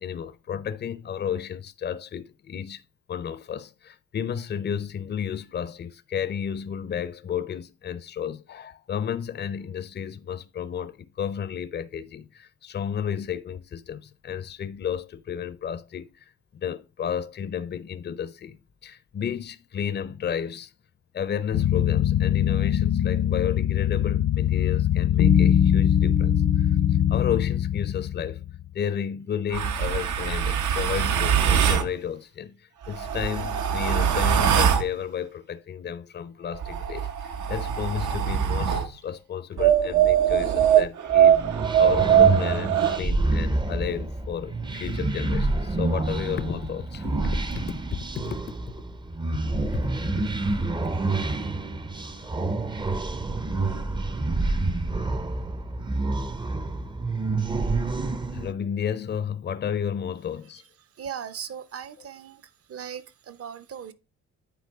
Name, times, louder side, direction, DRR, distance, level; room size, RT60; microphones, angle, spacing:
voice 1, 0.0-2.8 3.1-16.1 16.5-20.7 21.1-26.7 27.1-28.4 28.7-41.4 41.8-48.4 49.6-49.9 50.8-50.9 58.3-60.6, left 8 dB, 35° left, 0.6 m, -32 dB
sound 1, 21.5-28.6, left 10 dB, 65° left, 0.8 m, -22 dB
sound 2, 29.5-31.9 32.8-34.9 36.5-38.9 39.6-43.0, right 9 dB, 75° right, 0.9 m, -22 dB
sound 3, 41.1-58.5, right 2 dB, 15° right, 0.6 m, -28 dB
voice 2, 61.0-62.4 62.7-63.9, right 8 dB, 50° right, 0.8 m, -38 dB
9.2 x 3.9 x 3.5 m
cardioid pair, 90°, 30 cm